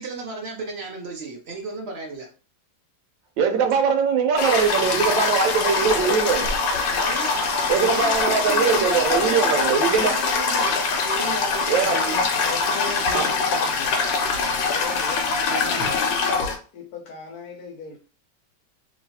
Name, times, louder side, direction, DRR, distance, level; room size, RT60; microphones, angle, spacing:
voice 1, 0.0-2.3 7.0-10.8 11.0-12.2 15.5-15.9, right 3 dB, 60° right, 1 dB, 0.6 m, -34 dB
voice 2, 3.4-6.5 7.7-10.1 11.7-12.0 13.1-13.3, right 6 dB, 85° right, 5 dB, 1.4 m, -21 dB
Toilet flush, 4.4-16.6, left 4 dB, 80° left, 1.3 m, -23 dB
voice 3, 6.9-7.2 12.1-15.2 15.7-18.0, left 5 dB, 65° left, 0 dB, 1.0 m, -38 dB
3.1 x 2.8 x 2.8 m, 0.36 s
omnidirectional pair, 2.0 m